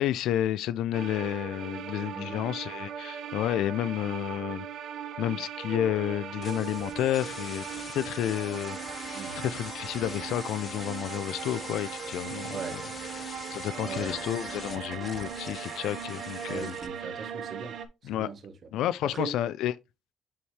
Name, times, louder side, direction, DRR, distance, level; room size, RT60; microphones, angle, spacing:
voice 1, 0.0-4.7 5.2-7.7 7.9-12.8 13.5-16.7 18.0-18.3 18.7-19.7, left 12 dB, 90° left, 0.3 m, -31 dB
sound 1, 0.9-17.9, right 8 dB, 70° right, 1.0 m, -39 dB
voice 2, 2.1-2.5 9.1-9.3 12.5-12.8 13.8-14.2 16.4-17.8 18.0-18.5 19.0-19.3, right 5 dB, 55° right, 1.5 m, -39 dB
sound 2, 6.4-16.9, left 5 dB, 45° left, 0.8 m, -43 dB
7.2 x 4.5 x 3.3 m
cardioid pair, 90°, 0 cm